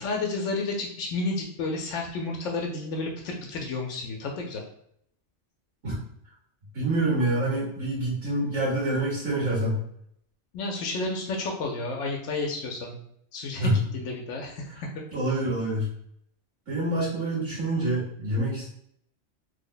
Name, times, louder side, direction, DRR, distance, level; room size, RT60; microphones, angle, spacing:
voice 1, 0.0-4.6 10.5-12.9 13.3-14.6, left 3 dB, 85° left, 0 dB, 0.9 m, -31 dB
voice 2, 6.7-9.8 13.6-13.8 15.1-15.9 16.7-18.7, right 1 dB, 85° right, -8 dB, 1.6 m, -26 dB
3.2 x 2.0 x 3.8 m, 0.70 s
omnidirectional pair, 1.2 m